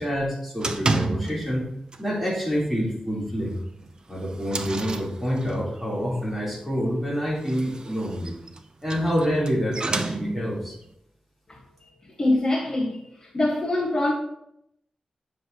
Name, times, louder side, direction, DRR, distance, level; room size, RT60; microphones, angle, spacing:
voice 1, 0.0-1.7 2.0-3.5 4.1-8.3 8.8-10.8, equal, ahead, 3.5 m, -27 dB
sound 1, 0.6-1.6 1.9-2.3 2.6-2.7 3.1-3.2 3.8-5.8 7.3-10.7, right 3 dB, 40° right, 0.7 m, -30 dB
voice 2, 12.2-13.0 13.3-14.1, left 2 dB, 35° left, 1.5 m, -23 dB
9.6 x 6.7 x 2.9 m
wide cardioid pair, 110°, 2 cm